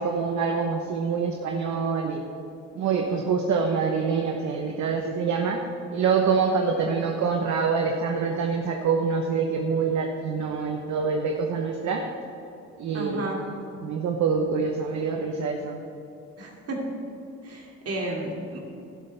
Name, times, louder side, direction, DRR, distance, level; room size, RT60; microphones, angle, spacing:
voice 1, 0.0-2.2 2.7-5.6 5.9-12.0 12.8-13.3 13.8-15.8, right 5 dB, 70° right, 2 dB, 1.0 m, -25 dB
voice 2, 12.9-13.4 16.4-16.8 17.4-18.6, right 1 dB, 55° right, -1 dB, 2.6 m, -32 dB
12.0 x 11.0 x 3.4 m, 2.7 s
cardioid pair, 90°, 30 cm